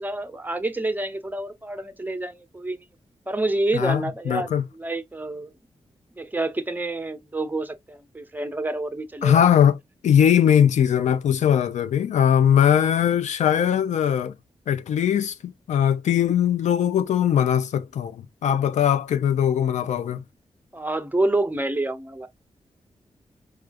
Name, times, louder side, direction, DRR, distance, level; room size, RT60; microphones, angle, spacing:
voice 1, 0.0-2.8 3.3-4.5 4.8-5.5 6.2-9.4 20.7-22.3, right 2 dB, 15° right, 0.7 m, -28 dB
voice 2, 3.7-4.6 9.2-9.8 10.0-14.3 14.7-20.2, left 9 dB, 85° left, 0.4 m, -20 dB
4.8 x 2.3 x 2.5 m
cardioid pair, 85°, 12 cm